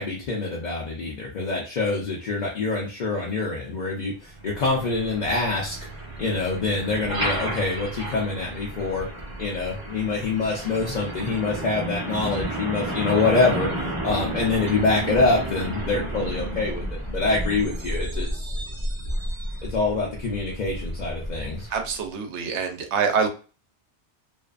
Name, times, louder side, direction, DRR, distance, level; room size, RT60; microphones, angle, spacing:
voice 1, 0.0-5.7 6.2-9.1 9.4-13.7 14.0-18.5 19.7-21.7, left 3 dB, 50° left, -3 dB, 0.6 m, -25 dB
Truck, 4.3-21.9, right 1 dB, 25° right, 0.5 m, -32 dB
voice 2, 21.7-23.3, right 6 dB, 80° right, 5 dB, 0.9 m, -25 dB
2.5 x 2.3 x 2.4 m, 0.35 s
omnidirectional pair, 1.2 m